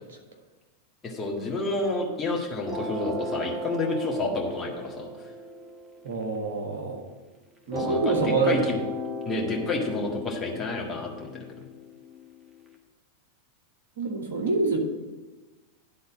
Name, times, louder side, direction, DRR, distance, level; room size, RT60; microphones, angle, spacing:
voice 1, 1.0-5.1 7.8-8.0 8.4-8.8 9.3-11.4, left 2 dB, 20° left, -2 dB, 1.7 m, -29 dB
sound 1, 2.7-7.1 7.7-12.7, left 1 dB, 10° right, 1.3 m, -36 dB
voice 2, 6.0-7.0 7.7-8.7 14.0-14.8, right 4 dB, 60° right, 1 dB, 1.6 m, -26 dB
10.5 x 4.0 x 7.1 m, 1.2 s
figure-of-eight pair, 90°, 0 cm